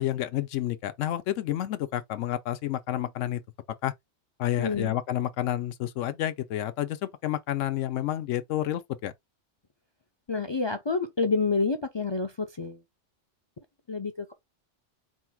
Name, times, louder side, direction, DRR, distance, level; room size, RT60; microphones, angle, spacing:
voice 1, 0.0-3.4 3.8-3.9 4.4-9.1, left 13 dB, 90° left, 1.0 m, -30 dB
voice 2, 4.6-4.9 10.3-12.8 13.9-14.3, left 4 dB, 45° left, 0.3 m, -28 dB
4.5 x 2.3 x 4.4 m
omnidirectional pair, 1.2 m